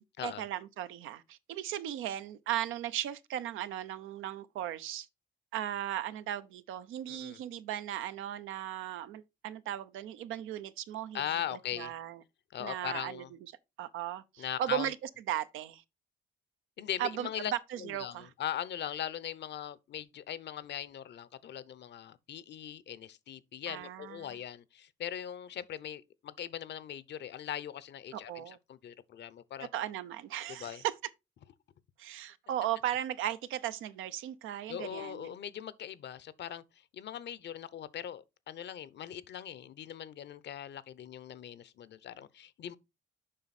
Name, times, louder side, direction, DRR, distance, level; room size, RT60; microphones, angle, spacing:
voice 1, 0.0-5.1 5.5-11.2 11.7-12.2 12.6-13.2 13.8-15.0 15.3-15.8 17.0-17.3 17.7-18.3 23.7-24.3 28.1-28.6 29.7-30.9 32.0-35.3, right 11 dB, 90° right, 0.7 m, -37 dB
voice 2, 7.1-7.4 11.1-11.9 12.5-13.3 14.4-14.9 16.8-17.5 17.8-29.7 30.5-30.8 34.7-42.8, left 10 dB, 60° left, 0.7 m, -40 dB
7.6 x 5.3 x 4.1 m
cardioid pair, 90°, 20 cm